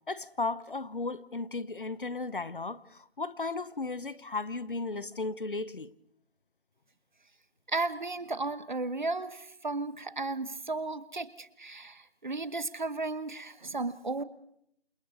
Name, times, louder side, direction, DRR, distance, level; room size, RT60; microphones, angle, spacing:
voice 1, 0.1-5.9, left 3 dB, 55° left, 1.1 m, -35 dB
voice 2, 7.7-14.2, right 3 dB, 50° right, 1.2 m, -34 dB
28.5 x 25.5 x 4.1 m
figure-of-eight pair, 160°, 31 cm